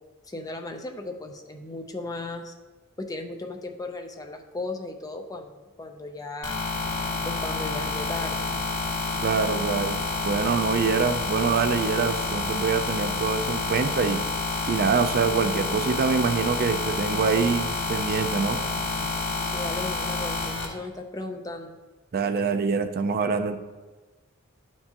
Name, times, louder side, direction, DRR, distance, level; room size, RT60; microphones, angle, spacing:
voice 1, 0.3-2.5 3.0-6.6 7.3-8.5 19.5-21.8, left 2 dB, 15° left, 3 dB, 0.5 m, -36 dB
sound 1, 6.4-20.6, left 3 dB, 65° left, 1.9 m, -29 dB
voice 2, 9.2-14.2 14.7-18.6 22.1-23.6, right 5 dB, 45° right, 8 dB, 0.4 m, -25 dB
11.5 x 4.5 x 2.9 m, 1.2 s
head